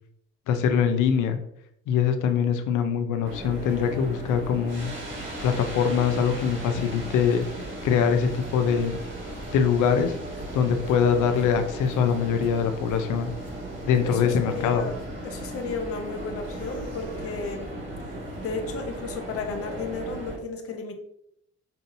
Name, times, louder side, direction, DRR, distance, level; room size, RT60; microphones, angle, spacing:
voice 1, 0.5-1.4 1.9-4.9 5.4-7.4 7.8-9.0 9.5-10.2 10.5-13.3 13.8-14.9, left 7 dB, 85° left, 7 dB, 0.6 m, -23 dB
sound 1, 3.2-20.4, right 1 dB, 40° right, 1.4 m, -36 dB
voice 2, 14.0-14.9 15.2-17.7 18.4-20.9, left 4 dB, 50° left, 4 dB, 0.7 m, -33 dB
5.5 x 2.7 x 2.7 m, 0.75 s
cardioid pair, 90°, 30 cm